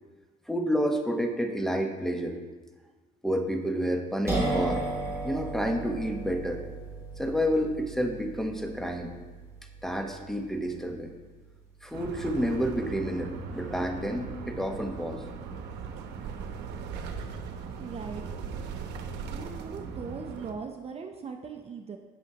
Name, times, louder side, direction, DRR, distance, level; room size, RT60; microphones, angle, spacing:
voice 1, 0.5-2.4 3.2-4.8 5.2-6.6 7.2-9.1 9.8-11.1 11.8-15.2, equal, ahead, 3 dB, 1.1 m, -29 dB
sound 1, 4.3-11.8, right 2 dB, 15° right, 3.0 m, -35 dB
sound 2, 11.9-20.5, right 5 dB, 90° right, 0.9 m, -39 dB
voice 2, 17.8-18.2 19.3-22.0, right 5 dB, 35° right, 5 dB, 0.7 m, -39 dB
18.0 x 6.1 x 2.9 m, 1.3 s
cardioid pair, 110°, 17 cm